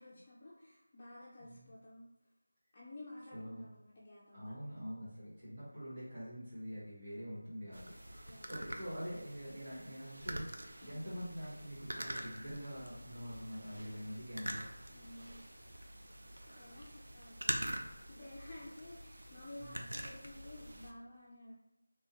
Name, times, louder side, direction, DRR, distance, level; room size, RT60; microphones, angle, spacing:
voice 1, 0.0-2.0 2.7-4.4 8.2-8.5 10.8-11.0 14.9-15.4 16.5-17.8 18.1-21.5, left 1 dB, 15° left, -7 dB, 0.3 m, -52 dB
voice 2, 1.4-1.7 3.3-3.6 4.3-10.5 10.8-14.7 19.6-19.9, equal, 15° right, -12 dB, 1.2 m, -45 dB
sound 1, 7.7-20.9, right 1 dB, 75° right, 0.4 m, -45 dB
3.6 x 2.1 x 2.7 m, 0.90 s
figure-of-eight pair, 180°, 0 cm